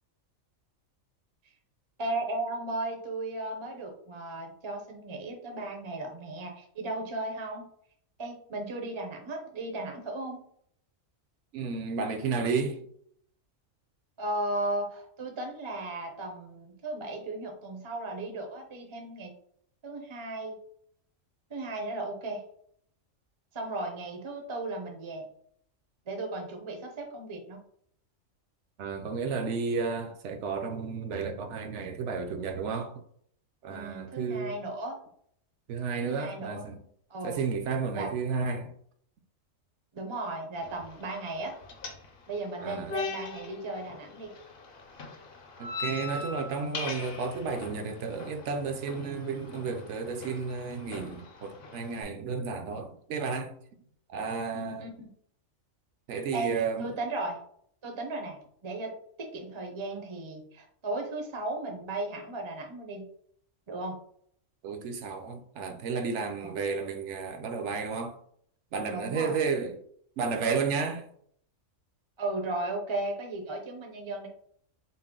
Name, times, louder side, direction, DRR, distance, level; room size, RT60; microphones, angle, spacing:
voice 1, 2.0-7.7 8.2-10.4 14.2-19.3 19.8-20.6 21.5-22.4 23.5-25.3 26.1-27.6 33.7-35.0 36.0-36.7 37.1-37.4 38.0-38.1 39.9-41.5 42.3-44.3 54.5-55.1 56.3-56.5 56.8-57.4 57.8-63.1 63.7-64.0 66.4-66.6 68.9-69.4 72.2-74.3, right 2 dB, 35° right, 0.5 m, -36 dB
voice 2, 11.5-12.8 28.8-33.0 33.6-34.6 35.7-36.8 37.2-38.7 42.6-42.9 45.6-53.5 54.1-54.9 56.1-56.9 64.6-68.2 68.7-69.8 70.2-71.1, right 5 dB, 70° right, 0.9 m, -32 dB
sound 1, 40.5-52.0, left 4 dB, 55° left, 0.8 m, -41 dB
4.2 x 2.1 x 3.6 m
omnidirectional pair, 1.4 m